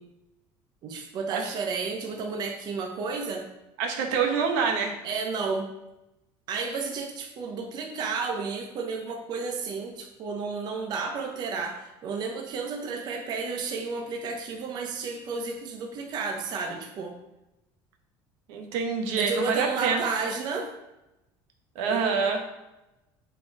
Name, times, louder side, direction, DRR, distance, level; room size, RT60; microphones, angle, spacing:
voice 1, 0.8-3.5 5.0-5.7 6.5-17.2 19.2-20.7 21.9-22.4, right 4 dB, 45° right, 2 dB, 1.0 m, -32 dB
voice 2, 3.8-5.0 18.5-20.0 21.7-22.4, right 5 dB, 80° right, 3 dB, 1.3 m, -26 dB
8.1 x 4.7 x 4.8 m, 0.95 s
cardioid pair, 140°, 10 cm